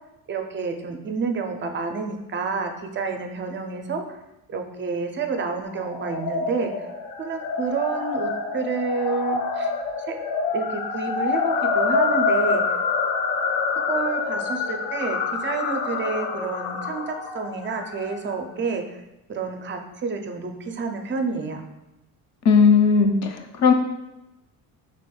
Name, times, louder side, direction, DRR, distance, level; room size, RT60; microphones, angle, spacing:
voice 1, 0.3-4.2 4.5-6.9 7.2-9.7 10.1-10.2 10.5-12.6 13.9-19.0 19.3-21.6, right 4 dB, 30° right, 5 dB, 0.4 m, -29 dB
sound 1, 5.8-18.2, left 4 dB, 85° left, 0.6 m, -26 dB
voice 2, 22.5-23.7, left 5 dB, 45° left, 5 dB, 0.5 m, -17 dB
5.1 x 3.4 x 2.3 m, 0.93 s
cardioid pair, 105°, 39 cm